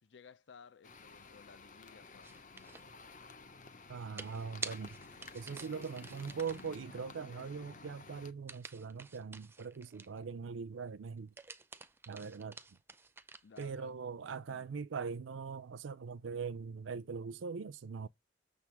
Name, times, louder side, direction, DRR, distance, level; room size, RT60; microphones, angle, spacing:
voice 1, 0.0-2.9 13.4-13.9 14.5-14.7, left 5 dB, 70° left, 0.5 m, -58 dB
sound 1, 0.8-8.3, left 4 dB, 40° left, 0.8 m, -53 dB
sound 2, 2.2-2.9 4.2-6.8 8.5-10.2 11.2-13.7, right 4 dB, 10° right, 0.4 m, -49 dB
voice 2, 3.9-5.0 5.3-11.3 12.1-12.6 13.6-18.1, right 5 dB, 85° right, 0.5 m, -41 dB
6.7 x 3.5 x 5.9 m
head